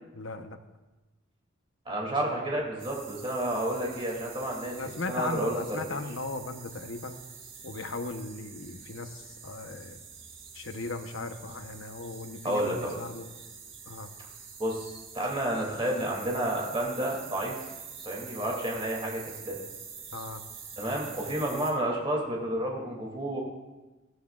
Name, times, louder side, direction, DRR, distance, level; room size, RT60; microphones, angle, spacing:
voice 1, 0.1-0.6 4.8-7.2 7.6-10.0 10.5-13.3 13.9-14.1 20.1-20.4, left 3 dB, 85° left, 7 dB, 0.9 m, -37 dB
voice 2, 1.9-4.7 5.1-5.8 12.4-12.9 14.6-17.5 18.0-19.6 20.8-23.4, right 1 dB, 25° right, -2 dB, 2.6 m, -30 dB
sound 1, 2.8-21.7, right 6 dB, 80° right, 3.9 m, -46 dB
20.5 x 14.0 x 2.4 m, 1.1 s
head